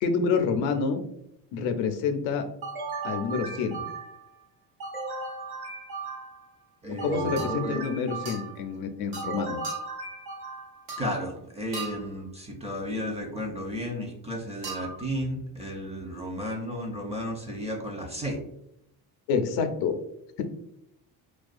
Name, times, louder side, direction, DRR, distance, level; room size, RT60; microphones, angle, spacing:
voice 1, 0.0-1.0 1.5-2.5 3.0-3.9 7.0-9.6 19.3-20.0 20.4-20.5, left 5 dB, 75° left, 6 dB, 0.5 m, -27 dB
sound 1, 2.6-4.3 4.8-6.5 7.0-8.6 9.2-10.9, right 4 dB, 50° right, 1.1 m, -36 dB
sound 2, 6.0-6.2 7.4-7.7 8.3-8.5 9.1-9.3 9.6-10.0 10.9-11.2 11.7-12.2 14.6-15.1, right 3 dB, 90° right, 0.9 m, -38 dB
voice 2, 6.8-7.9 11.0-18.4, equal, 15° right, 1 dB, 0.4 m, -33 dB
2.3 x 2.3 x 2.4 m, 0.79 s
supercardioid pair, 85°, 45 cm